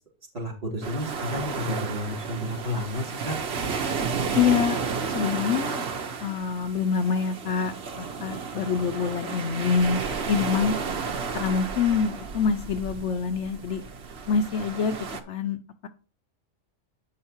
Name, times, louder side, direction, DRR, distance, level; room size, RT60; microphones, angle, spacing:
voice 1, 0.3-3.4, left 1 dB, 35° right, -1 dB, 3.4 m, -31 dB
sound 1, 0.8-15.2, right 5 dB, 55° right, 1.1 m, -32 dB
voice 2, 4.3-4.8 5.1-5.8 6.2-10.0 10.3-10.7 11.3-13.8 14.3-15.0 15.3-15.6, left 6 dB, 65° left, 9 dB, 0.9 m, -25 dB
8.6 x 5.6 x 4.4 m, 0.35 s
omnidirectional pair, 1.4 m